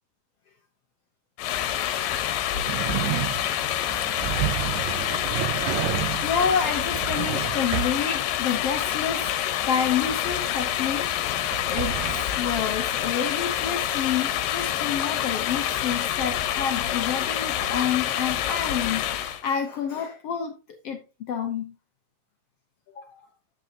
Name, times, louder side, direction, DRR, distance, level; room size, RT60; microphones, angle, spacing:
sound 1, 1.4-19.4, left 11 dB, 85° left, 2.6 m, -27 dB
voice 1, 1.5-3.2 3.7-4.7 5.1-5.3 5.9-20.6 20.8-21.7 23.0-23.2, left 7 dB, 70° left, 1.4 m, -30 dB
sound 2, 2.7-8.1 11.4-12.2, right 14 dB, 80° right, 1.8 m, -31 dB
10.0 x 9.0 x 2.9 m
omnidirectional pair, 3.9 m